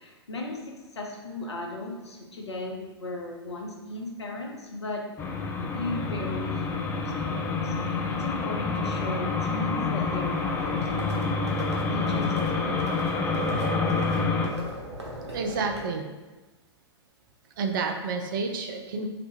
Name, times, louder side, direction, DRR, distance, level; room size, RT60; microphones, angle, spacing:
voice 1, 0.0-5.1 5.7-11.3 11.8-13.4, left 2 dB, 75° left, 1 dB, 0.7 m, -37 dB
sound 1, 5.2-14.5, left 4 dB, 15° left, 0.3 m, -28 dB
Livestock farm animals working animals, 10.0-15.8, right 1 dB, 85° right, 0.9 m, -38 dB
voice 2, 15.3-16.0 17.6-19.1, right 4 dB, 50° right, 4 dB, 0.5 m, -30 dB
3.0 x 2.8 x 3.5 m, 1.2 s
figure-of-eight pair, 105°, 14 cm